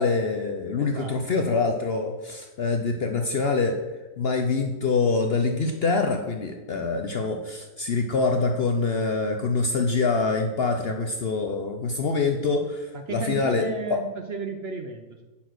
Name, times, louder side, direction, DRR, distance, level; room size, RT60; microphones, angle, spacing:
voice 1, 0.0-3.8 4.2-14.0, left 4 dB, 55° left, 4 dB, 0.7 m, -25 dB
voice 2, 0.8-1.4 12.9-15.3, right 5 dB, 55° right, 5 dB, 0.7 m, -34 dB
9.7 x 4.3 x 6.2 m, 1.2 s
omnidirectional pair, 1.6 m